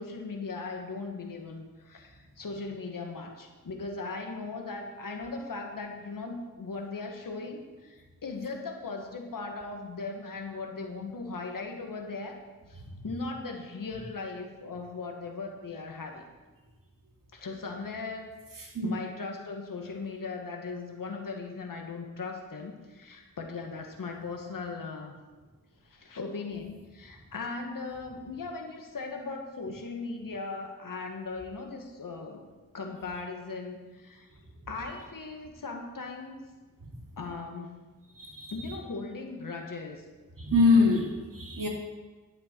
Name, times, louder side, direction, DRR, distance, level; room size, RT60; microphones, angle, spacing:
voice 1, 0.0-12.4 12.7-16.2 17.3-18.3 18.8-25.1 25.8-32.4 32.7-34.3 34.7-36.4 37.2-37.9 38.5-40.0, left 3 dB, 70° left, 2 dB, 1.8 m, -38 dB
voice 2, 38.2-38.5 40.4-41.7, left 3 dB, 65° right, -1 dB, 2.8 m, -24 dB
11.0 x 8.6 x 4.7 m, 1.3 s
cardioid pair, 55°, 34 cm